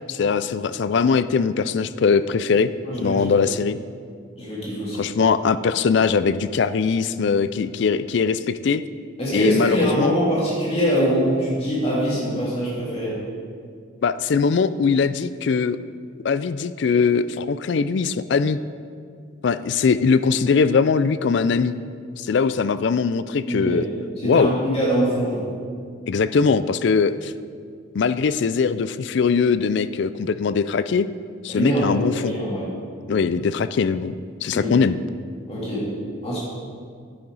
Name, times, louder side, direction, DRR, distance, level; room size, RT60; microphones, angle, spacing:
voice 1, 0.1-2.7 3.0-3.8 5.0-8.8 9.3-10.1 14.0-15.8 16.2-18.6 19.4-21.7 22.2-23.8 24.2-24.5 26.1-27.3 27.9-31.1 31.4-32.3 33.1-34.1 34.4-35.0, left 5 dB, 55° left, 14 dB, 0.3 m, -21 dB
voice 2, 2.9-3.4 4.4-5.1 9.2-13.1 23.5-23.8 24.2-25.4 31.5-32.7 34.5-34.7 35.5-35.9 36.2-36.4, equal, 30° left, -7 dB, 3.0 m, -23 dB
10.0 x 9.9 x 4.0 m, 2.2 s
head